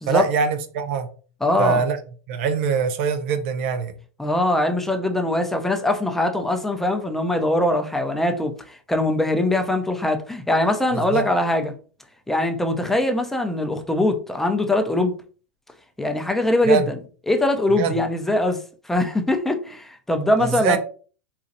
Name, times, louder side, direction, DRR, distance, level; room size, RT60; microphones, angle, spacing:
voice 1, 0.1-1.1 1.6-2.0 2.3-3.9 10.9-11.3 16.7-16.9 17.8-17.9 20.4-20.8, right 6 dB, 60° right, 0.5 m, -23 dB
voice 2, 1.4-1.8 4.2-11.7 12.3-15.1 16.0-17.0 17.3-20.8, left 1 dB, 5° left, 0.6 m, -22 dB
4.1 x 2.4 x 2.6 m
hypercardioid pair, 120°, 8 cm